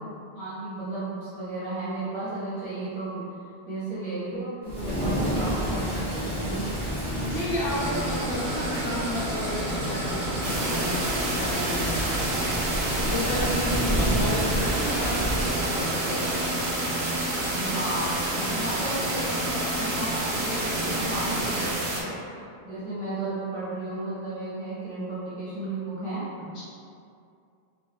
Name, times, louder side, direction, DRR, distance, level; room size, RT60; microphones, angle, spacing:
voice 1, 0.3-3.3 3.7-6.7 17.5-26.2, right 2 dB, 30° right, -12 dB, 1.0 m, -34 dB
Thunder / Rain, 4.6-15.7, equal, 5° left, 1.1 m, -30 dB
voice 2, 7.3-12.3 12.9-16.6 26.5-26.6, left 1 dB, 65° left, -8 dB, 0.9 m, -32 dB
sound 1, 7.7-21.7, right 1 dB, 80° right, 0.9 m, -32 dB
sound 2, 10.4-22.0, right 2 dB, 55° right, 0.6 m, -30 dB
3.5 x 2.4 x 2.4 m, 2.4 s
omnidirectional pair, 1.0 m